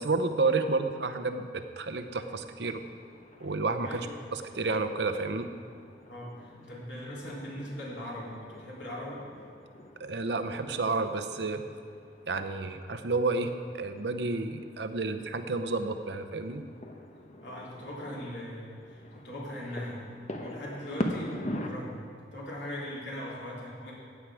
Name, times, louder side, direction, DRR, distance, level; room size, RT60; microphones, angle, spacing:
voice 1, 0.0-2.8 3.4-4.0 4.3-5.5 10.0-11.6 12.3-16.6, right 3 dB, 70° right, 8 dB, 0.8 m, -30 dB
sound 1, 2.2-21.7, left 1 dB, 40° left, 1.0 m, -43 dB
voice 2, 6.1-9.2 17.4-20.0 20.3-22.0 22.3-23.9, equal, 75° left, -5 dB, 3.6 m, -40 dB
15.0 x 9.3 x 4.9 m, 2.3 s
head